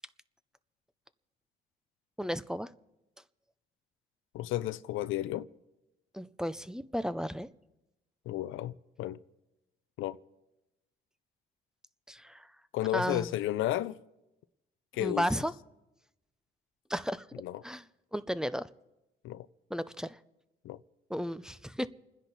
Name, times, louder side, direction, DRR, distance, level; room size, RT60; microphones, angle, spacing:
voice 1, 2.2-2.7 6.1-7.5 12.1-12.5 12.9-13.3 15.0-15.5 16.9-17.3 17.6-17.8 18.1-18.7 19.7-20.2 21.1-21.9, equal, 5° right, 0.6 m, -33 dB
voice 2, 4.3-5.5 8.3-9.2 10.0-10.2 12.7-14.0 14.9-15.3 17.3-17.6 19.2-19.5 20.6-20.8, left 14 dB, 90° left, 0.6 m, -33 dB
29.5 x 10.5 x 4.1 m
cardioid pair, 90°, 20 cm